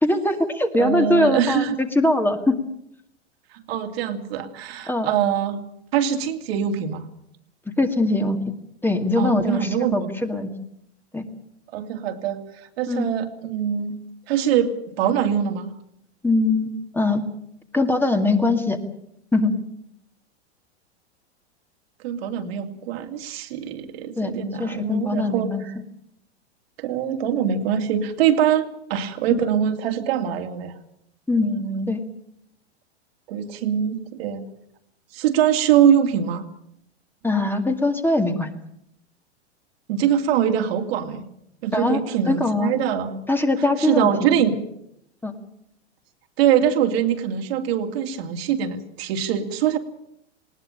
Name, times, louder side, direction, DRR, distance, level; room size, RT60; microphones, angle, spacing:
voice 1, 0.0-2.5 4.9-5.1 7.7-8.4 8.8-10.5 11.1-11.2 12.9-13.1 16.2-17.2 17.7-18.8 19.3-19.5 24.2-24.3 24.6-25.7 29.3-29.4 31.3-31.5 31.9-32.0 37.2-38.5 41.7-42.0 42.3-42.7 43.3-44.3 45.2-45.4, left 2 dB, 5° left, 6 dB, 2.1 m, -21 dB
voice 2, 0.8-1.8 3.5-5.6 5.9-7.1 9.2-10.1 11.7-14.0 14.3-14.7 15.0-15.7 22.0-25.5 26.8-30.7 31.3-31.9 33.3-34.5 35.1-36.4 39.9-41.2 41.6-43.2 43.8-44.6 46.4-49.8, right 9 dB, 60° right, 5 dB, 2.7 m, -23 dB
20.0 x 18.5 x 8.8 m, 0.74 s
hypercardioid pair, 105°, 34 cm